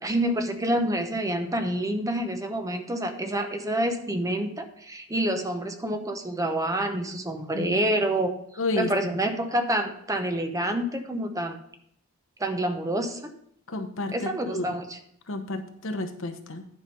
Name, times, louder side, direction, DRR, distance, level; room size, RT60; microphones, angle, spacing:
voice 1, 0.0-8.3 8.8-11.6 12.4-13.3 14.1-15.0, right 1 dB, 15° right, 6 dB, 0.8 m, -27 dB
voice 2, 8.6-9.2 13.7-14.7 15.3-16.6, left 2 dB, 70° left, 6 dB, 1.1 m, -31 dB
9.9 x 5.3 x 5.3 m, 0.70 s
head